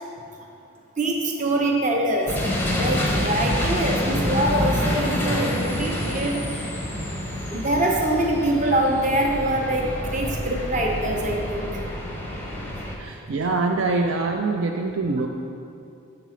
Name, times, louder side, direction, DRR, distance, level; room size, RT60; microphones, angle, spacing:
voice 1, 1.0-2.4 2.8-6.7 7.5-11.8, right 1 dB, 35° right, 0 dB, 0.7 m, -24 dB
sound 1, 2.3-13.0, left 1 dB, 10° left, 0.6 m, -27 dB
voice 2, 13.0-15.3, right 3 dB, 60° right, 1 dB, 0.4 m, -24 dB
6.8 x 4.1 x 6.3 m, 2.5 s
head